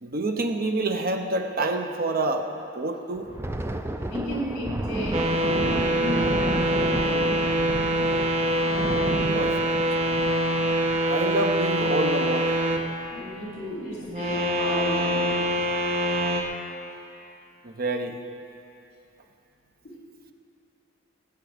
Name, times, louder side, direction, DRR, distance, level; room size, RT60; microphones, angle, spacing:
voice 1, 0.0-2.5 2.7-3.3 9.3-9.7 11.1-12.6 17.6-18.2, right 2 dB, 50° right, 5 dB, 0.9 m, -27 dB
Thunder, 3.2-12.2 12.6-12.8 13.2-13.4 14.0-14.5, right 1 dB, 10° right, 0.5 m, -32 dB
voice 2, 4.0-7.3 13.1-15.3 19.8-19.9, equal, 55° left, -4 dB, 4.0 m, -33 dB
sound 1, 5.1-12.8 14.0-16.4, right 1 dB, 35° right, 1.1 m, -24 dB
20.0 x 8.2 x 5.2 m, 2.8 s
head